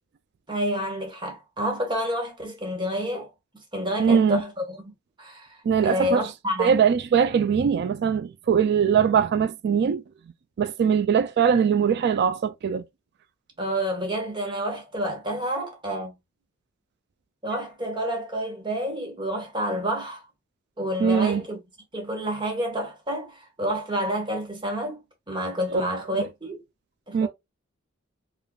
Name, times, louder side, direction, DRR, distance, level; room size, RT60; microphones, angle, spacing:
voice 1, 0.5-3.3 3.7-4.9 5.2-6.8 13.6-16.2 17.4-20.2 20.8-21.6 21.9-25.0 25.3-26.6 27.1-27.3, equal, 25° right, 1.4 m, -29 dB
voice 2, 4.0-4.4 5.7-6.2 6.6-10.0 10.6-12.8 21.0-21.4 25.7-25.8 27.1-27.3, right 7 dB, 55° right, 0.3 m, -21 dB
4.9 x 2.5 x 2.3 m
head